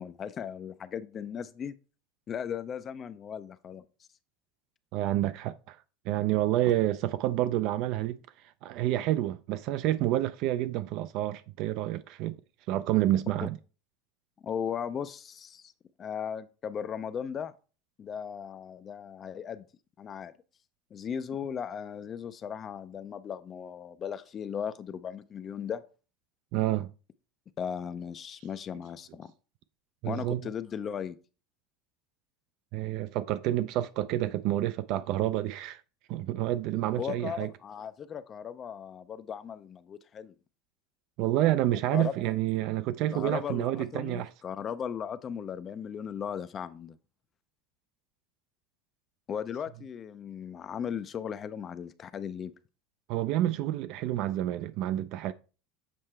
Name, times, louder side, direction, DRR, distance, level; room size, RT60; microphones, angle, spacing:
voice 1, 0.0-1.7 2.3-3.8 14.4-15.7 16.0-17.5 18.0-19.7 20.0-20.3 20.9-25.8 27.6-29.3 30.1-31.2 37.0-40.3 41.7-42.1 43.1-47.0 49.3-52.5, left 8 dB, 30° left, 0.3 m, -37 dB
voice 2, 4.9-5.8 6.1-8.2 8.6-12.4 12.7-13.6 26.5-26.9 30.0-30.4 32.7-35.8 36.1-37.5 41.2-44.3 53.1-55.3, right 14 dB, 55° right, 0.3 m, -28 dB
7.5 x 4.4 x 3.3 m
supercardioid pair, 135°, 0 cm